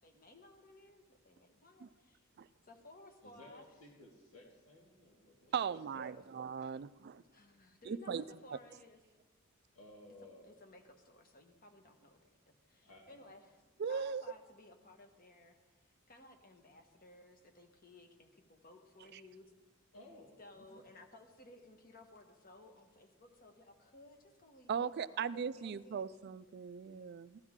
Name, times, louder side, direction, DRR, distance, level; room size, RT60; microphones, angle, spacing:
voice 1, 0.0-2.2 2.6-3.7 5.9-6.1 6.6-6.8 7.3-9.0 10.5-12.2 12.5-13.5 13.9-19.5 20.4-26.0, left 2 dB, 45° left, 1.3 m, -58 dB
voice 2, 3.2-5.8 9.7-10.5 12.8-13.3 19.9-20.8, left 1 dB, 90° left, 2.1 m, -58 dB
voice 3, 5.5-7.2 7.9-8.2 13.8-14.2 19.1-19.2 24.7-27.4, right 6 dB, 50° right, 0.3 m, -38 dB
15.5 x 12.0 x 3.7 m
head